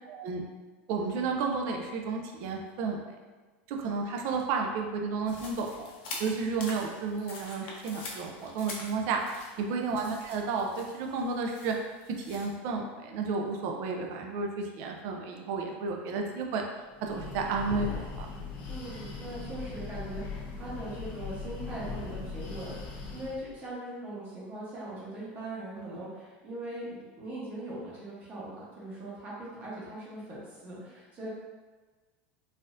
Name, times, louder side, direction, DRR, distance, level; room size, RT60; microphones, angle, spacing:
voice 1, 0.1-0.4 0.9-3.0 3.7-5.9 6.2-11.8 12.3-16.6 17.0-18.3, right 4 dB, 50° right, 2 dB, 0.4 m, -32 dB
sound 1, 5.3-12.5, left 3 dB, 75° left, 0.8 m, -45 dB
Breathing, 16.9-23.5, left 4 dB, 35° left, 0.6 m, -39 dB
voice 2, 18.7-31.3, right 1 dB, 25° right, -7 dB, 1.0 m, -40 dB
4.0 x 2.6 x 2.5 m, 1.3 s
supercardioid pair, 165°, 6 cm